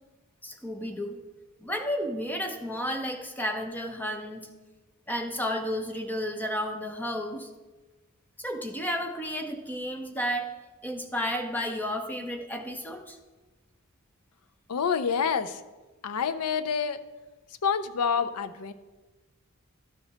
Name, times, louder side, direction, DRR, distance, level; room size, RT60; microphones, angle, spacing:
voice 1, 0.4-1.2 1.6-4.5 5.1-7.5 8.4-10.5 10.8-13.2, equal, 10° left, 5 dB, 0.7 m, -32 dB
voice 2, 14.7-15.6 16.0-17.0 17.6-18.7, left 6 dB, 90° left, 11 dB, 0.5 m, -27 dB
12.0 x 4.9 x 4.1 m, 1.2 s
head